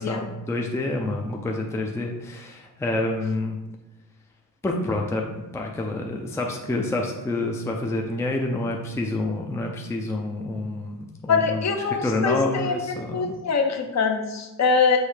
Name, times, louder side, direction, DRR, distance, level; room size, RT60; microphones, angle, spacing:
voice 1, 0.0-3.6 4.6-11.7 12.0-13.3, left 2 dB, 10° left, 1 dB, 0.4 m, -28 dB
voice 2, 11.3-15.0, left 5 dB, 45° left, 4 dB, 0.7 m, -23 dB
6.4 x 3.1 x 4.9 m, 0.99 s
wide cardioid pair, 170°, 36 cm